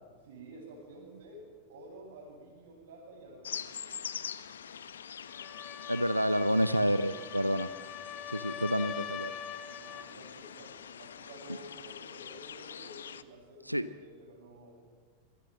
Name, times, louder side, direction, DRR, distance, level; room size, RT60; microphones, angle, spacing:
voice 1, 0.2-3.6 9.6-14.7, right 1 dB, 60° right, -4 dB, 8.0 m, -51 dB
sound 1, 3.4-13.2, left 8 dB, 65° left, 1.1 m, -44 dB
sound 2, 5.3-10.2, left 9 dB, 30° left, 1.2 m, -43 dB
voice 2, 5.9-7.7 8.3-9.3 13.7-13.9, equal, 90° right, 14 dB, 0.7 m, -29 dB
28.0 x 24.0 x 7.7 m, 1.5 s
figure-of-eight pair, 90°, 0 cm